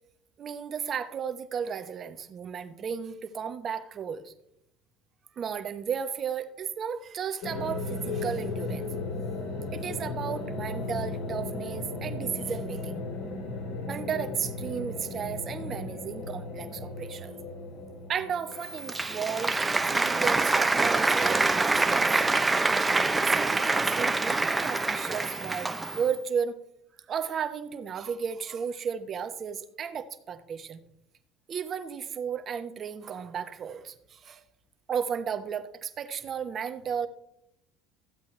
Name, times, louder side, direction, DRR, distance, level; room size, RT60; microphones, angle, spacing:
voice 1, 0.4-4.3 5.4-8.9 9.7-13.0 13.9-17.3 18.1-19.6 19.9-22.1 22.4-22.9 23.3-26.6 27.1-30.8 31.5-34.4 34.9-37.1, right 7 dB, 45° right, 10 dB, 1.0 m, -34 dB
sound 1, 7.4-19.5, left 3 dB, 75° left, 2.8 m, -36 dB
Applause, 18.5-26.1, right 3 dB, 15° right, 0.7 m, -25 dB
14.5 x 8.1 x 3.3 m, 0.79 s
hypercardioid pair, 80°, 0 cm